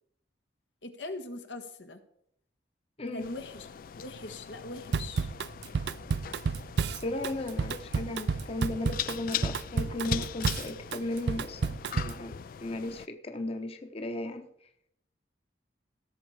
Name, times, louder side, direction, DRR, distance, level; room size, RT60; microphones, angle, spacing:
voice 1, 0.8-2.0 3.1-3.7 4.0-5.3, left 2 dB, 85° left, 7 dB, 1.5 m, -41 dB
sound 1, 3.2-13.1, left 10 dB, 50° left, 0.3 m, -41 dB
Drum kit / Drum, 4.9-12.2, right 5 dB, 65° right, 0.4 m, -31 dB
voice 2, 6.9-14.5, left 2 dB, 35° left, 7 dB, 0.9 m, -36 dB
16.5 x 7.2 x 4.9 m, 0.72 s
head